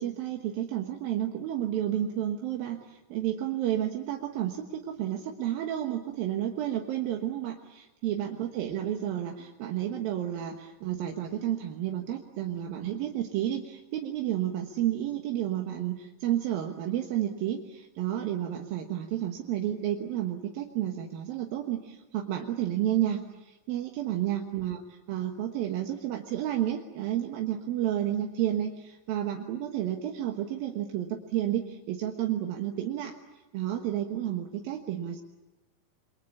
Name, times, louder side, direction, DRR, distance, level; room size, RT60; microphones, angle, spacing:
voice 1, 0.0-24.8 25.1-33.2 33.5-35.2, right 11 dB, 85° right, 2 dB, 3.2 m, -31 dB
28.5 x 23.5 x 8.4 m, 1.0 s
omnidirectional pair, 4.1 m